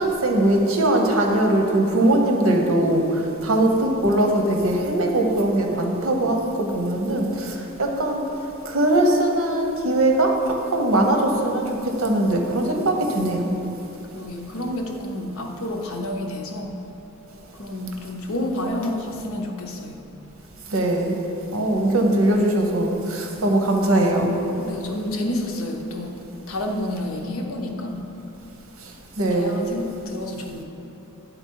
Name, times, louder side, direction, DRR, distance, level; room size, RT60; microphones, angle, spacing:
voice 1, 0.0-8.2 8.6-10.4 10.7-13.5 20.7-21.2 21.5-24.3 29.2-29.6, right 1 dB, 70° right, 2 dB, 0.9 m, -21 dB
voice 2, 14.1-16.7 17.6-20.0 24.5-26.2 26.5-28.0 29.3-30.6, left 1 dB, 80° left, 2 dB, 0.8 m, -29 dB
9.5 x 3.9 x 4.6 m, 2.9 s
head